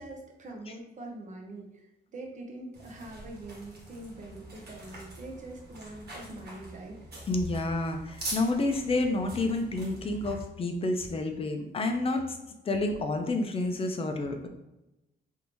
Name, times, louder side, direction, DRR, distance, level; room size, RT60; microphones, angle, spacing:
voice 1, 0.0-7.0, right 2 dB, 40° right, 2 dB, 0.7 m, -44 dB
sound 1, 2.7-10.4, right 2 dB, 60° right, 1.3 m, -44 dB
voice 2, 7.3-12.4 12.7-14.5, left 2 dB, 30° left, 5 dB, 0.5 m, -29 dB
3.5 x 2.6 x 2.9 m, 0.94 s
cardioid pair, 120°, 19 cm